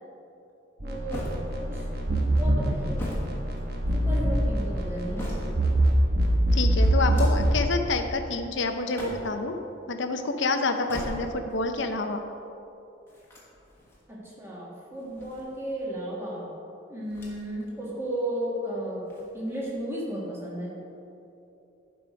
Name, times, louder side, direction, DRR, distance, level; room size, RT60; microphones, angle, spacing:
voice 1, 0.8-1.3 1.6-1.9 2.4-3.0 3.9-5.4 14.1-16.5 16.9-19.1 19.3-20.8, right 1 dB, 10° right, -5 dB, 1.7 m, -34 dB
sound 1, 0.8-7.6, right 1 dB, 50° right, 1.1 m, -24 dB
sound 2, 1.1-1.9 2.7-4.1 4.7-5.8 6.9-7.6 8.7-9.5 10.7-11.6 13.1-14.0 14.9-15.9 17.1-17.6 18.0-18.1 19.0-19.8, equal, 10° left, 1.4 m, -39 dB
voice 2, 6.5-9.6 9.9-12.2, left 3 dB, 65° left, 6 dB, 0.7 m, -28 dB
11.0 x 4.9 x 5.1 m, 2.8 s
head